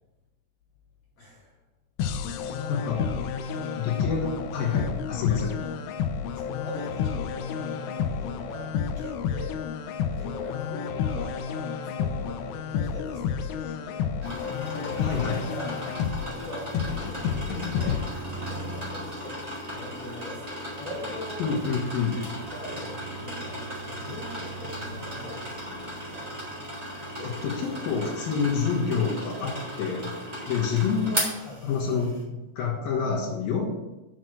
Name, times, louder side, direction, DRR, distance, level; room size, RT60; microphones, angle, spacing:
voice 1, 1.2-1.5 3.4-3.7 5.6-5.9 6.3-9.6 10.1-15.8 16.2-18.0 18.3-22.1 22.5-25.6 26.1-26.6 31.3-31.6, left 1 dB, 50° left, -7 dB, 2.8 m, -42 dB
sound 1, 2.0-18.0, left 7 dB, 85° left, 2.7 m, -30 dB
voice 2, 2.7-3.1 3.8-5.5 15.0-15.4 21.4-22.2 27.2-30.1 30.5-31.3 31.6-33.6, left 6 dB, 65° left, -1 dB, 3.0 m, -28 dB
sound 2, 14.2-32.2, equal, 15° right, 1.3 m, -36 dB
6.2 x 6.1 x 6.5 m, 1.0 s
omnidirectional pair, 4.8 m